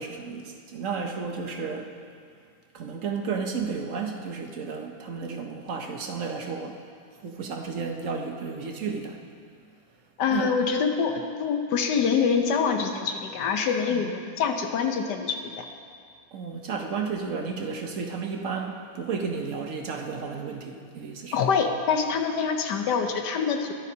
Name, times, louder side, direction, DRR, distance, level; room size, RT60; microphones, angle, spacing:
voice 1, 0.0-1.9 2.7-6.8 7.1-9.2 10.3-10.5 13.9-14.1 16.3-21.4, right 5 dB, 55° right, 3 dB, 0.9 m, -32 dB
voice 2, 10.2-15.6 21.3-23.7, left 6 dB, 65° left, 5 dB, 1.3 m, -25 dB
21.5 x 9.6 x 2.8 m, 2.2 s
omnidirectional pair, 2.1 m